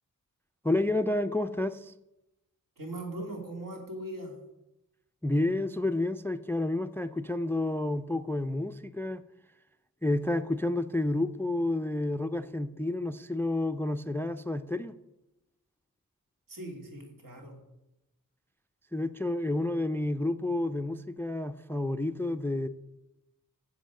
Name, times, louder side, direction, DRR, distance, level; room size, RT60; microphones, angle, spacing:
voice 1, 0.6-1.9 5.2-9.2 10.0-14.9 18.9-22.7, left 2 dB, 5° left, 12 dB, 0.3 m, -30 dB
voice 2, 2.8-4.5 16.5-17.6, right 1 dB, 75° right, 1 dB, 3.1 m, -40 dB
10.5 x 7.5 x 6.4 m, 0.92 s
wide cardioid pair, 140°, 34 cm